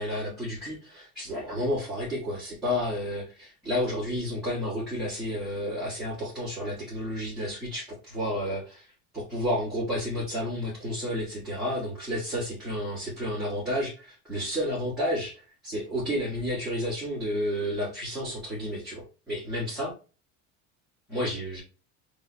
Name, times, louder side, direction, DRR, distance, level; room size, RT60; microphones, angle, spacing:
voice 1, 0.0-19.9 21.1-21.6, equal, ahead, -11 dB, 1.9 m, -31 dB
3.8 x 3.3 x 3.1 m, 0.34 s
cardioid pair, 165°, 37 cm